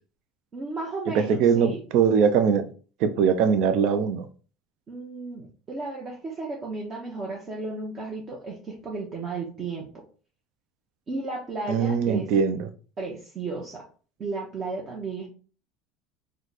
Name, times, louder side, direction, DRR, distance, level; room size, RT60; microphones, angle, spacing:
voice 1, 0.5-1.8 4.9-9.9 11.1-12.3 13.0-13.8 14.2-15.3, right 3 dB, 35° right, 0.8 m, -34 dB
voice 2, 1.3-2.6 3.0-4.2 11.7-12.7, right 6 dB, 65° right, 0.4 m, -21 dB
3.1 x 2.2 x 3.9 m
supercardioid pair, 105°, 0 cm